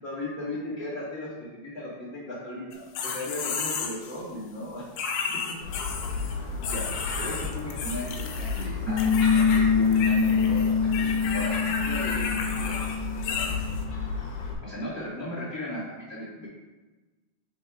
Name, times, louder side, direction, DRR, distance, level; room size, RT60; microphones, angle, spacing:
voice 1, 0.0-5.6 6.6-6.9 7.1-12.3 12.6-12.8 14.6-15.8 16.1-16.5, left 1 dB, 15° left, -9 dB, 0.8 m, -36 dB
sound 1, 2.7-4.2 5.0-6.4 6.6-8.7 9.0-9.6 9.9-13.8, left 6 dB, 90° left, 2.6 m, -33 dB
Gull seagull, 5.6-14.5, left 2 dB, 70° left, 2.2 m, -33 dB
Piano, 8.9-14.0, left 6 dB, 80° right, 1.7 m, -25 dB
4.8 x 4.4 x 5.0 m, 1.2 s
omnidirectional pair, 4.2 m